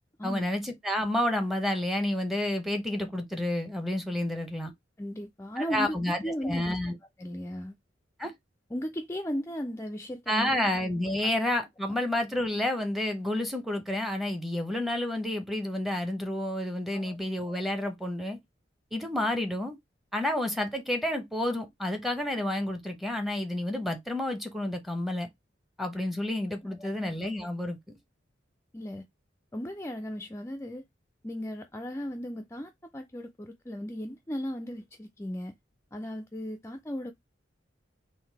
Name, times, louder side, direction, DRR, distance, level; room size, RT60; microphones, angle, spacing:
voice 1, 0.2-4.7 5.6-6.2 6.4-6.9 8.2-8.3 10.3-18.4 18.9-19.8 20.1-25.3 25.8-28.0, left 1 dB, ahead, 0.9 m, -30 dB
voice 2, 5.0-6.8 7.2-7.8 8.7-10.6 11.2-11.3 16.9-17.2 26.6-26.9 28.7-29.0 29.5-30.8 31.2-35.5 35.9-37.1, equal, 15° left, 0.4 m, -36 dB
3.9 x 2.6 x 4.5 m
head